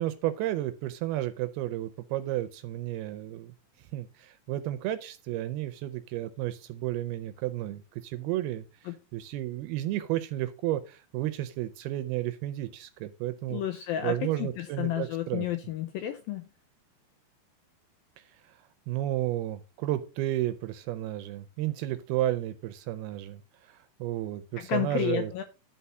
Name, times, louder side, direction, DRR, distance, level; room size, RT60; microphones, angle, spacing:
voice 1, 0.0-13.6 14.0-15.5 18.4-18.6 18.9-25.3, right 14 dB, 80° right, 2.4 m, -32 dB
voice 2, 13.5-16.5 24.6-25.4, left 12 dB, 90° left, 2.1 m, -31 dB
11.5 x 4.2 x 5.5 m
omnidirectional pair, 4.9 m